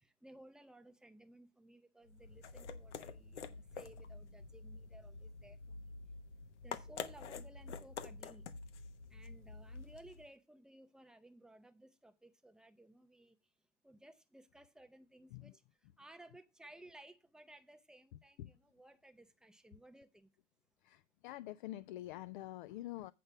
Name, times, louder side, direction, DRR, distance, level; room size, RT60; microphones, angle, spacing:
voice 1, 0.0-5.9 6.6-8.4 9.1-13.4 13.8-15.6 16.0-20.3, right 1 dB, ahead, 0.6 m, -59 dB
sound 1, 2.1-10.3, left 5 dB, 70° left, 1.1 m, -48 dB
voice 2, 18.1-18.6 20.8-23.1, left 15 dB, 45° left, 0.4 m, -47 dB
8.3 x 5.3 x 5.8 m
hypercardioid pair, 100°, 36 cm